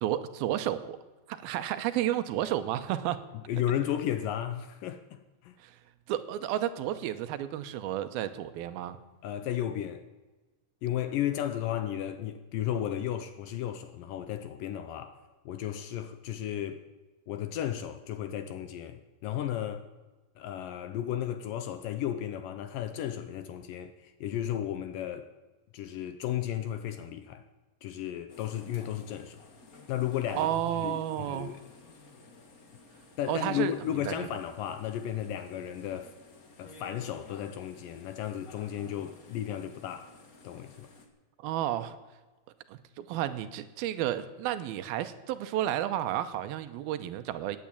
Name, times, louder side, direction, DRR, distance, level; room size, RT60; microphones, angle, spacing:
voice 1, 0.0-1.0 1.3-3.2 5.6-5.8 6.1-9.0 30.3-31.5 33.3-33.7 34.1-34.3 41.4-42.0 42.7-47.6, right 12 dB, 80° right, 2.5 m, -32 dB
voice 2, 3.5-5.6 9.2-10.0 10.8-15.2 15.5-16.8 17.3-19.9 20.4-25.3 25.7-27.4 27.8-29.4 29.9-31.6 33.2-36.1 36.6-40.1 40.4-40.9, left 11 dB, 75° left, 2.1 m, -34 dB
sound 1, 28.3-41.1, left 3 dB, 55° left, 0.9 m, -54 dB
16.5 x 9.6 x 8.7 m
omnidirectional pair, 4.5 m